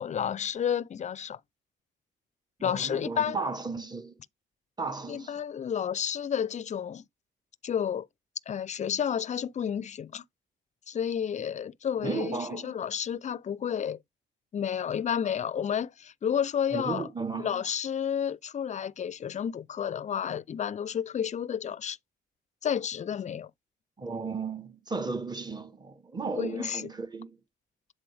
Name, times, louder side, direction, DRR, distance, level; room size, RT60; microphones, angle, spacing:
voice 1, 0.0-1.4 2.6-3.4 5.1-7.0 7.6-8.1 8.5-10.2 10.9-14.0 14.5-17.1 17.4-22.0 22.6-23.5 26.4-26.9, left 8 dB, 35° left, 0.4 m, -31 dB
voice 2, 2.6-4.2 4.8-5.4 12.0-12.8 16.7-17.6 24.0-27.4, right 4 dB, 20° right, 1.2 m, -35 dB
7.6 x 4.0 x 3.3 m
cardioid pair, 90°, 20 cm